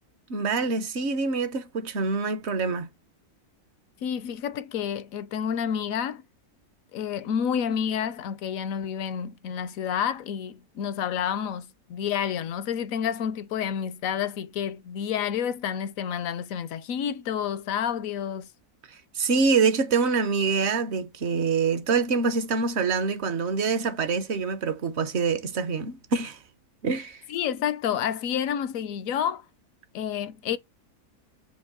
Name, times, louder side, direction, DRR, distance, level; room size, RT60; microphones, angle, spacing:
voice 1, 0.3-2.9 19.1-26.4 26.8-27.2, right 4 dB, 50° right, 1.0 m, -25 dB
voice 2, 4.0-6.3 6.9-18.5 27.3-29.4 29.9-30.6, left 8 dB, 70° left, 0.9 m, -29 dB
7.1 x 2.8 x 5.9 m
omnidirectional pair, 1.6 m